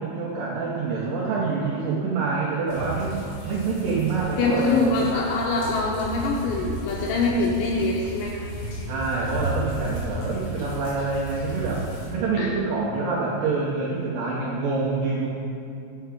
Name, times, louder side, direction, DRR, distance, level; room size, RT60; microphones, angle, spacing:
voice 1, 0.0-4.9 8.9-15.3, right 4 dB, 90° right, -6 dB, 2.4 m, -26 dB
sound 1, 2.7-12.1, right 1 dB, 60° left, 3.6 m, -34 dB
voice 2, 4.4-8.4 12.4-12.5, left 3 dB, 85° left, -2 dB, 2.6 m, -24 dB
10.0 x 5.6 x 3.6 m, 2.6 s
omnidirectional pair, 5.8 m